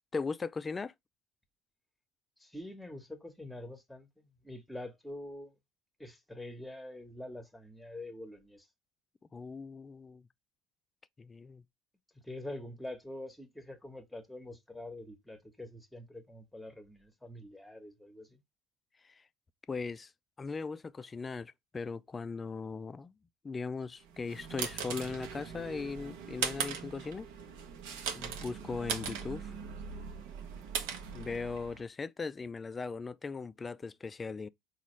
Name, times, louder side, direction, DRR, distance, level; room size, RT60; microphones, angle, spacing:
voice 1, 0.1-0.9 9.3-10.2 11.2-11.6 19.0-19.2 19.7-20.1 20.4-23.1 23.4-27.3 28.1-29.5 31.1-34.5, left 4 dB, 25° left, 0.3 m, -39 dB
voice 2, 2.4-5.5 6.0-8.7 12.1-18.4, left 1 dB, 5° left, 1.0 m, -45 dB
sound 1, 24.1-31.8, right 6 dB, 75° right, 0.8 m, -39 dB
4.0 x 2.4 x 3.0 m
supercardioid pair, 90°, 0 cm